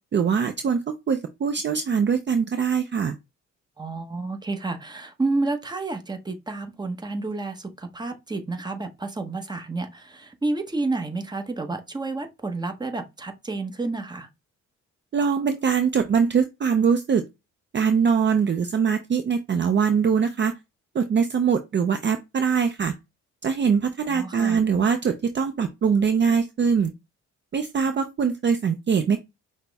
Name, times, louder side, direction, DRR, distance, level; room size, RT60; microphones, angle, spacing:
voice 1, 0.1-3.1 15.1-17.2 17.7-20.5 20.9-22.9 23.4-26.9 27.5-29.2, right 6 dB, 40° right, 0.5 m, -22 dB
voice 2, 3.8-14.3 24.1-24.6, right 3 dB, 15° right, 0.9 m, -30 dB
5.8 x 2.1 x 3.4 m
cardioid pair, 85°, 29 cm